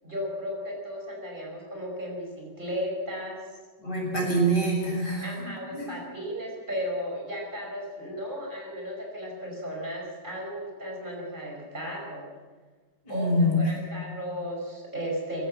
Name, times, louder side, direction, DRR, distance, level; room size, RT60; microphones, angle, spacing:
voice 1, 0.0-3.4 5.2-12.3 13.1-13.3 13.5-15.5, equal, 25° right, -2 dB, 5.8 m, -35 dB
voice 2, 3.8-5.5 5.7-5.9 13.0-13.6, right 1 dB, 65° left, -2 dB, 7.2 m, -25 dB
22.5 x 15.5 x 8.0 m, 1.4 s
omnidirectional pair, 2.0 m